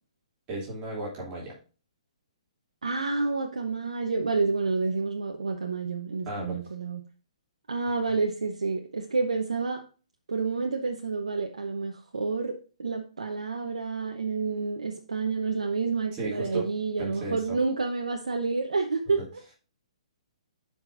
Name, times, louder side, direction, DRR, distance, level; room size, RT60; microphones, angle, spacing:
voice 1, 0.5-1.6 6.2-6.7 16.1-16.7 17.0-17.6 19.2-19.3, right 2 dB, 30° right, -4 dB, 3.0 m, -35 dB
voice 2, 2.8-7.0 7.7-9.8 10.3-19.2, right 4 dB, 85° right, 3 dB, 0.9 m, -29 dB
11.5 x 5.1 x 2.6 m, 0.36 s
hypercardioid pair, 135°, 4 cm